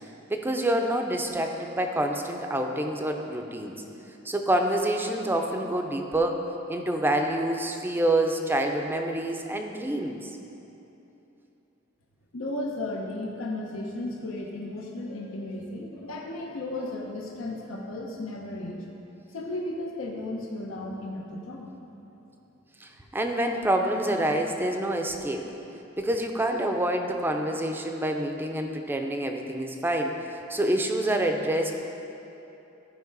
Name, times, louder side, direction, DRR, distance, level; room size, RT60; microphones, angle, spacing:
voice 1, 0.3-3.8 4.2-10.3 22.8-25.5 26.0-31.8, right 1 dB, 10° right, 4 dB, 0.5 m, -27 dB
voice 2, 12.3-18.8 19.3-21.7, left 2 dB, 75° left, -1 dB, 0.9 m, -34 dB
14.0 x 5.1 x 4.0 m, 3.0 s
head